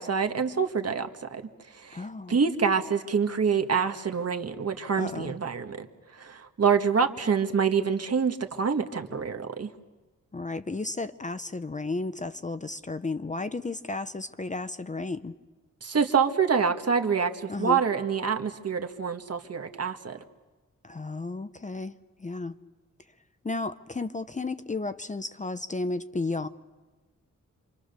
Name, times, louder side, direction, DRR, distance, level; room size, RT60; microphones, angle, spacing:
voice 1, 0.0-5.9 6.1-9.7 15.8-20.2, right 6 dB, 50° right, 6 dB, 1.6 m, -26 dB
voice 2, 1.9-2.4 5.0-5.3 10.3-15.3 17.5-17.8 20.8-22.6 23.4-26.5, left 3 dB, 25° left, 11 dB, 0.7 m, -33 dB
28.0 x 25.5 x 6.8 m, 1.3 s
wide cardioid pair, 140°, 32 cm